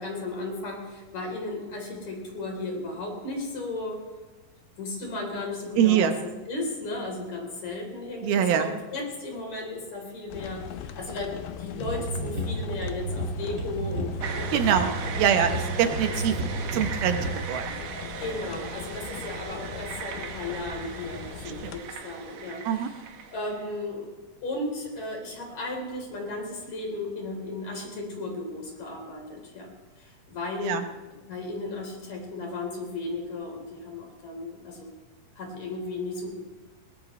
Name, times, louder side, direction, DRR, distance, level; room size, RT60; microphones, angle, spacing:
voice 1, 0.0-4.0 4.8-6.1 6.5-14.9 15.3-15.4 18.2-24.1 24.4-29.7 30.0-30.8 31.1-34.9 35.4-36.4, left 2 dB, 50° left, 1 dB, 5.0 m, -35 dB
voice 2, 5.8-6.1 8.2-8.7 14.5-14.9 15.2-16.3 16.7-17.8 21.6-21.7 22.6-22.9 30.6-30.9, right 9 dB, 85° right, 7 dB, 2.9 m, -24 dB
sound 1, 10.3-21.8, left 9 dB, 85° left, 2.7 m, -40 dB
sound 2, 11.8-17.4, right 1 dB, 30° right, 2.7 m, -32 dB
sound 3, 14.2-23.8, right 6 dB, 65° right, 2.6 m, -38 dB
21.5 x 20.0 x 3.2 m, 1.2 s
omnidirectional pair, 4.2 m